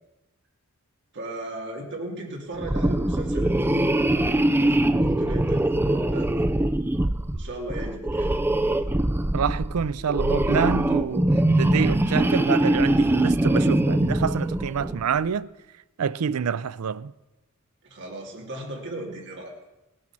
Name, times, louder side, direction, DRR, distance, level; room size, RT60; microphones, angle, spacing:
voice 1, 1.1-6.5 7.3-8.3 17.8-19.5, right 1 dB, 55° right, 2.7 m, -36 dB
sound 1, 2.6-15.1, right 1 dB, 10° right, 0.4 m, -23 dB
voice 2, 9.3-11.3 11.6-15.5 16.0-17.1, right 7 dB, 80° right, 0.4 m, -27 dB
17.5 x 8.7 x 6.1 m
head